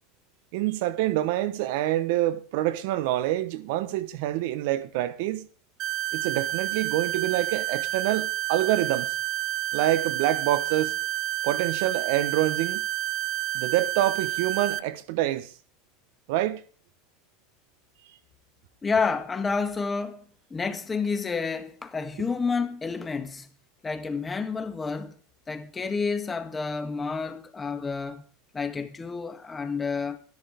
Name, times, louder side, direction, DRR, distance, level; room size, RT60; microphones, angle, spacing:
voice 1, 0.5-5.5 6.1-9.2 9.7-11.0 11.4-12.9 13.5-15.5 16.3-16.6, right 14 dB, 70° right, 1.1 m, -26 dB
sound 1, 5.8-14.8, right 14 dB, 45° right, 1.0 m, -30 dB
voice 2, 18.8-20.2 20.5-23.5 23.8-25.1 25.5-28.2 28.5-30.2, left 4 dB, 20° left, 1.8 m, -29 dB
13.0 x 11.0 x 5.2 m
hypercardioid pair, 100°, 0 cm